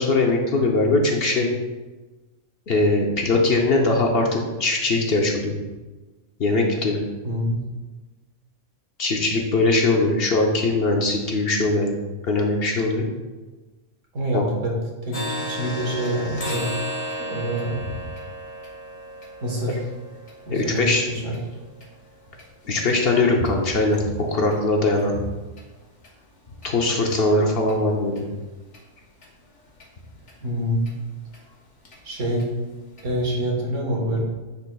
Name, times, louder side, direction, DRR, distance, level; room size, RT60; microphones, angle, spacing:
voice 1, 0.0-1.5 2.7-5.5 6.4-7.0 9.0-12.0 12.2-13.0 14.3-14.4 20.5-21.1 22.6-25.2 26.6-28.3, left 2 dB, 55° left, 1 dB, 0.9 m, -21 dB
voice 2, 7.2-7.6 14.1-14.8 15.0-16.7 17.2-17.8 19.4-19.8 20.5-21.4 30.4-30.8 32.0-32.5 33.0-34.2, equal, 70° right, -2 dB, 1.7 m, -26 dB
sound 1, 15.1-22.9 23.4-23.5 23.9-24.1 24.5-24.6 25.0-25.1 25.6-25.7 26.0-26.1 26.6-26.7 27.1-27.2 27.7-27.8 28.2-28.3 28.7-28.8 29.2-29.3 29.8-29.9 30.3-30.4 30.9-31.0 31.3-31.4 31.8-32.0 32.4-32.5 33.0-33.1, equal, 85° left, 1.7 m, -35 dB
10.0 x 4.4 x 2.3 m, 1.2 s
omnidirectional pair, 1.3 m